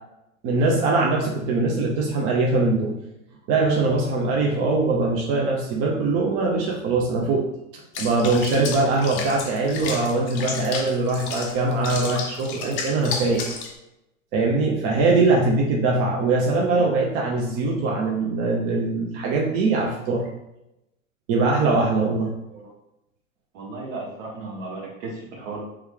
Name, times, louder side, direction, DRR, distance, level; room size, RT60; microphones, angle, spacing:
voice 1, 0.4-2.9 3.5-13.4 14.3-20.3 21.3-22.3, right 3 dB, 35° right, -2 dB, 0.6 m, -22 dB
Water / Bathtub (filling or washing), 7.9-13.8, left 5 dB, 30° left, 0.4 m, -33 dB
voice 2, 23.5-25.6, right 3 dB, 60° right, -2 dB, 1.2 m, -35 dB
3.1 x 2.3 x 3.4 m, 0.88 s
figure-of-eight pair, 90°, 41 cm